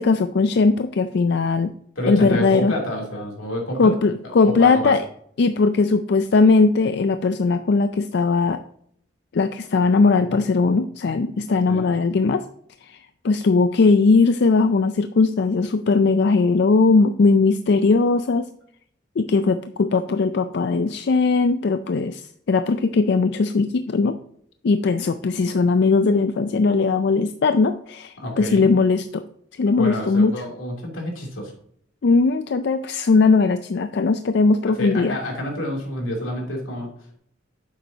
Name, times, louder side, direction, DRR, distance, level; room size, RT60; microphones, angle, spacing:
voice 1, 0.0-1.7 2.1-2.7 3.8-5.0 5.4-8.6 9.3-12.4 12.8-18.5 19.2-24.2 24.6-29.2 29.5-30.3 32.0-35.2, left 4 dB, 60° left, 10 dB, 0.4 m, -19 dB
voice 2, 2.0-3.9 4.4-4.9 11.7-11.8 28.2-28.7 29.8-31.5 34.8-36.9, left 1 dB, 85° left, -1 dB, 3.1 m, -28 dB
9.5 x 7.2 x 2.8 m, 0.66 s
head